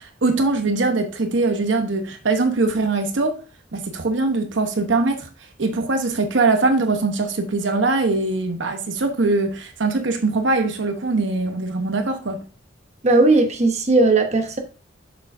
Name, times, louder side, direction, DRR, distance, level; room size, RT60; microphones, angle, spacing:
voice 1, 0.0-3.4 3.7-5.3 5.6-12.4, right 3 dB, 70° right, 0.9 m, -22 dB
voice 2, 13.0-14.6, right 2 dB, 35° right, 1.0 m, -17 dB
6.8 x 6.5 x 2.6 m
head